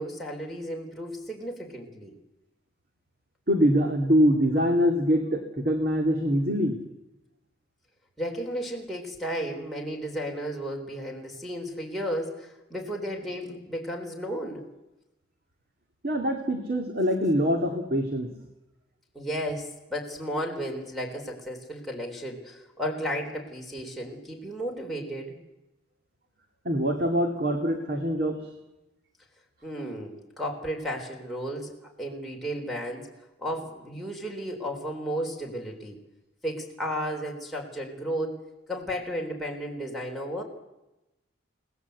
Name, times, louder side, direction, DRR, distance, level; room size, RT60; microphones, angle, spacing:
voice 1, 0.0-2.1 8.2-14.7 19.1-25.4 29.6-33.1 33.4-36.0 36.4-38.4 38.7-40.4, equal, ahead, -1 dB, 4.0 m, -33 dB
voice 2, 3.5-6.8 16.0-18.3 26.6-28.4, equal, 50° right, 4 dB, 2.4 m, -24 dB
29.0 x 19.0 x 8.2 m, 0.98 s
head